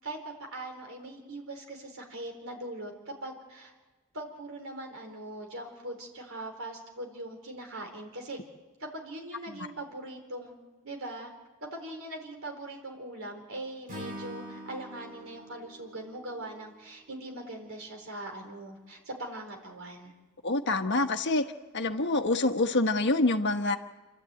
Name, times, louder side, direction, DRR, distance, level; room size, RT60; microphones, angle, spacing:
voice 1, 0.0-3.7 4.1-8.4 8.8-10.6 10.8-11.3 11.6-20.1, right 1 dB, 65° right, 3 dB, 4.2 m, -41 dB
Acoustic guitar / Strum, 13.9-17.1, equal, 40° right, 6.2 m, -44 dB
voice 2, 20.4-21.4 21.7-23.8, left 2 dB, 55° left, 6 dB, 1.2 m, -26 dB
29.0 x 12.0 x 9.1 m, 1.3 s
head